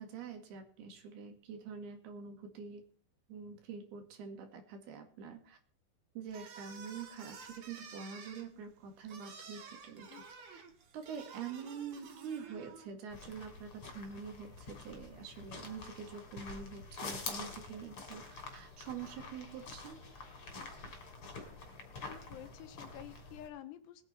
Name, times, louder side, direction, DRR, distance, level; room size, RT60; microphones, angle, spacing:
voice 1, 0.0-2.8 3.3-5.6 6.2-10.2 10.5-10.6 10.9-20.0, right 6 dB, 65° right, 5 dB, 3.9 m, -46 dB
sound 1, 6.3-12.9, right 5 dB, 50° right, 2.6 m, -52 dB
sound 2, 13.1-23.5, left 3 dB, 35° left, 3.3 m, -47 dB
voice 2, 21.0-21.3 21.9-24.0, left 11 dB, 80° left, 10 dB, 3.2 m, -51 dB
21.0 x 9.1 x 4.3 m, 0.43 s
omnidirectional pair, 5.0 m